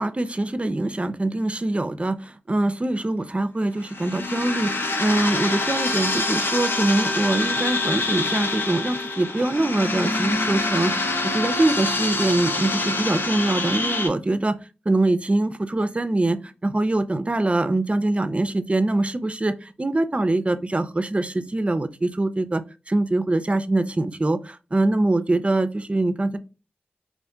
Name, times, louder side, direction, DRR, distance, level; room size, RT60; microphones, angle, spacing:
voice 1, 0.0-14.6 14.9-22.6 22.9-26.4, right 2 dB, 30° right, 12 dB, 0.4 m, -23 dB
sound 1, 3.8-14.1, left 2 dB, 65° left, 0.5 m, -25 dB
2.7 x 2.5 x 3.4 m, 0.31 s
cardioid pair, 50°, 4 cm